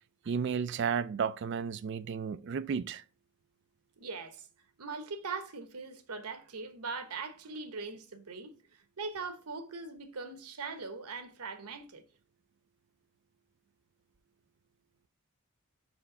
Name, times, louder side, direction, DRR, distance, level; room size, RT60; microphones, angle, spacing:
voice 1, 0.3-3.0, right 6 dB, 50° right, 0.3 m, -33 dB
voice 2, 4.0-4.5 4.8-12.0, right 4 dB, 90° right, 1.1 m, -41 dB
5.7 x 4.3 x 5.4 m
head